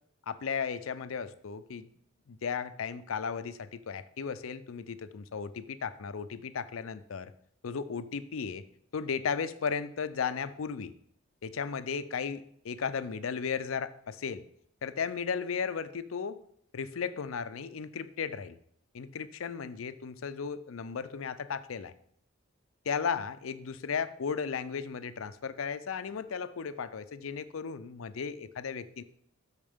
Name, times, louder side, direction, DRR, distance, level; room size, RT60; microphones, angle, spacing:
voice 1, 0.3-1.9 2.3-7.3 7.6-8.6 8.9-10.9 11.4-14.4 14.8-16.4 16.7-18.6 18.9-21.9 22.9-29.0, left 6 dB, 90° left, 13 dB, 0.5 m, -35 dB
8.6 x 6.5 x 3.6 m, 0.67 s
head